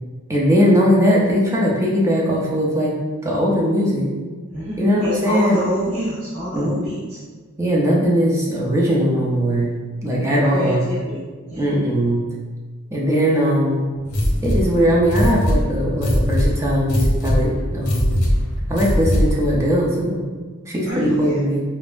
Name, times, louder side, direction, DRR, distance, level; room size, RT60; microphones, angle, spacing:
voice 1, 0.3-2.9 3.2-4.1 4.8-5.7 6.5-6.8 7.6-10.9 11.6-12.2 12.9-13.9 14.4-18.2 18.7-20.2 20.7-21.6, equal, 15° right, -4 dB, 0.6 m, -19 dB
voice 2, 4.5-7.2 10.3-11.2 11.5-11.7 20.9-21.4, equal, 85° right, -11 dB, 1.4 m, -27 dB
sound 1, 14.1-19.5, equal, 85° left, 0.8 m, -20 dB
5.2 x 2.0 x 2.5 m, 1.4 s
head